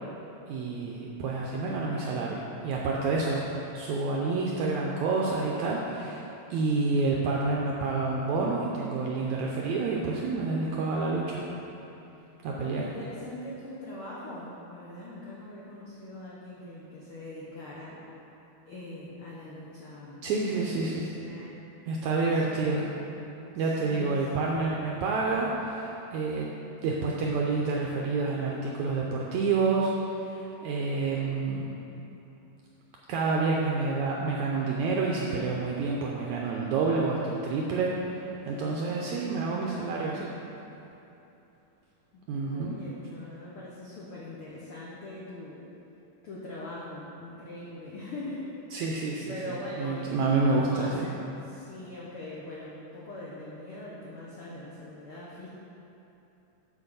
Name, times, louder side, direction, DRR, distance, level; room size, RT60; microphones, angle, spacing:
voice 1, 0.5-6.2 6.5-11.4 12.4-12.8 20.2-21.1 21.9-22.9 23.6-26.5 26.8-31.8 33.1-40.3 42.3-42.8 48.7-51.0, right 3 dB, 80° right, -2 dB, 1.7 m, -28 dB
voice 2, 12.5-18.0 18.7-20.2 20.5-20.6 20.9-21.6 22.4-22.9 23.6-24.6 38.7-39.2 42.1-42.2 42.5-45.7 46.2-48.5 49.3-55.5, left 1 dB, 85° left, -6 dB, 1.2 m, -42 dB
8.6 x 4.7 x 6.6 m, 2.9 s
omnidirectional pair, 4.0 m